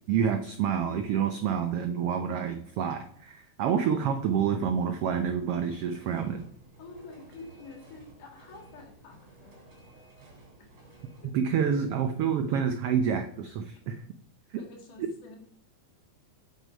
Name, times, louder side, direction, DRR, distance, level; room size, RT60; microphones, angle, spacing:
voice 1, 0.1-6.5 11.3-14.0 14.5-14.6, right 7 dB, 80° right, 7 dB, 1.3 m, -28 dB
sound 1, 5.6-11.3, right 2 dB, 40° right, 4.2 m, -54 dB
voice 2, 6.8-9.6 10.6-10.7 11.2-11.3 14.6-15.4, left 3 dB, 85° left, 2 dB, 3.7 m, -48 dB
8.2 x 7.4 x 5.1 m, 0.66 s
omnidirectional pair, 3.6 m